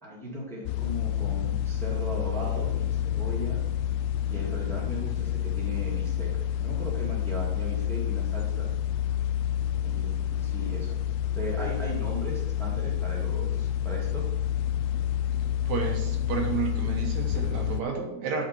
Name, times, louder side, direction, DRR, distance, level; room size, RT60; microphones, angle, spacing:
voice 1, 0.0-3.6 4.2-8.7 9.8-11.0 11.3-14.2, equal, ahead, -4 dB, 1.8 m, -37 dB
sound 1, 0.7-17.8, left 10 dB, 85° left, 1.4 m, -29 dB
voice 2, 15.7-18.4, right 6 dB, 70° right, 2 dB, 2.4 m, -31 dB
9.3 x 6.5 x 4.4 m, 0.91 s
omnidirectional pair, 3.4 m